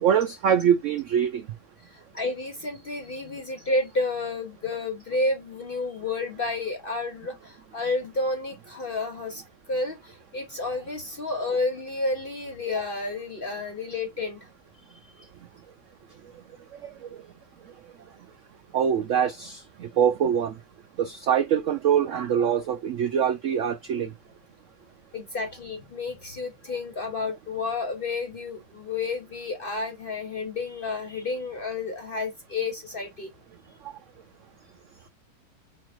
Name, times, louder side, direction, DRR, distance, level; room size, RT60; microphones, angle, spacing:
voice 1, 0.0-1.4 18.7-20.5 21.0-24.1, right 8 dB, 80° right, 0.6 m, -24 dB
voice 2, 1.9-9.4 9.7-14.4 15.0-15.3 25.1-33.3, left 3 dB, 45° left, 0.7 m, -31 dB
4.6 x 4.5 x 2.4 m
omnidirectional pair, 1.9 m